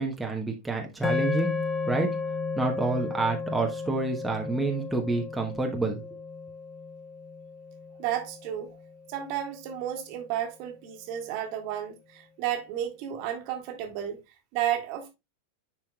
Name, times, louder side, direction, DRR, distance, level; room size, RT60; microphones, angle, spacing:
voice 1, 0.0-1.5 1.9-2.1 2.5-6.0, right 3 dB, 5° right, 1.1 m, -28 dB
sound 1, 1.0-9.4, left 4 dB, 20° left, 0.6 m, -34 dB
voice 2, 8.0-8.8 9.1-14.2 14.5-15.1, right 10 dB, 45° right, 1.6 m, -32 dB
10.5 x 4.5 x 2.3 m
figure-of-eight pair, 90°, 0 cm